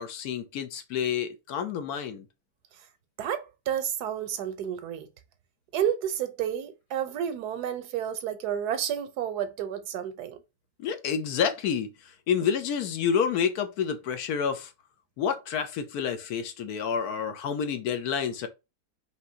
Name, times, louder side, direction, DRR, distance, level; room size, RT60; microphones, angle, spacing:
voice 1, 0.0-2.2 10.8-14.7 15.2-18.5, left 7 dB, 75° left, 1.1 m, -29 dB
voice 2, 3.2-5.1 5.7-10.4, right 9 dB, 75° right, 1.2 m, -31 dB
5.1 x 2.9 x 2.7 m
omnidirectional pair, 1.7 m